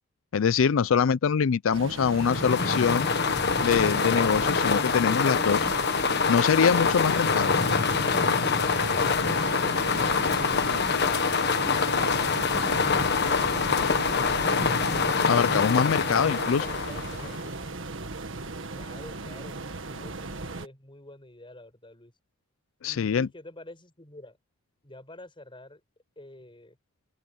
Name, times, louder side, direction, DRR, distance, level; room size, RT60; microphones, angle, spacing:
voice 1, 0.3-3.1 3.6-5.7 6.3-7.5 15.3-16.7 22.8-23.3, left 6 dB, 75° left, 0.4 m, -24 dB
sound 1, 1.7-20.7, right 3 dB, 70° right, 1.7 m, -37 dB
sound 2, 2.0-17.5, left 5 dB, 55° left, 1.3 m, -25 dB
voice 2, 16.0-17.6 18.7-19.6 19.9-22.1 22.8-24.4 24.8-25.8 26.2-26.8, left 1 dB, 25° left, 6.1 m, -47 dB
open air
head